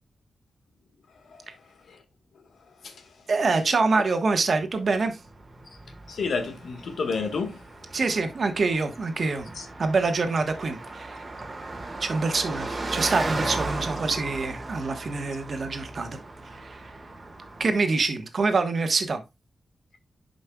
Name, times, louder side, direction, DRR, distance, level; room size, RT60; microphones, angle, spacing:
voice 1, 3.3-5.2 7.9-9.5 9.8-11.2 12.0-16.2 16.5-16.9 17.6-19.2, right 3 dB, 50° right, 1.3 m, -25 dB
Car passing by, 4.6-17.8, right 2 dB, 25° right, 1.7 m, -36 dB
voice 2, 6.1-7.6 9.5-9.7, left 4 dB, 85° left, 1.6 m, -30 dB
10.5 x 5.3 x 2.3 m
wide cardioid pair, 145°, 0 cm